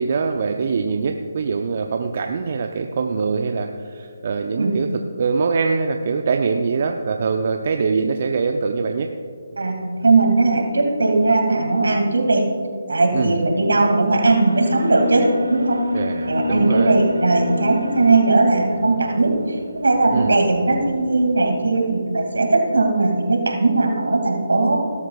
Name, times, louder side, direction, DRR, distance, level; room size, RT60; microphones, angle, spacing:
voice 1, 0.0-4.9 5.2-9.1 13.1-13.5 15.9-17.0 20.1-20.4, right 5 dB, 50° right, 5 dB, 0.6 m, -23 dB
voice 2, 9.6-12.4 12.9-15.8 16.2-19.3 19.7-24.8, right 3 dB, 75° right, 2 dB, 2.3 m, -18 dB
Alarm, 14.3-21.4, left 2 dB, 90° right, 1.2 m, -28 dB
18.5 x 12.5 x 2.4 m, 2.1 s
figure-of-eight pair, 150°, 0 cm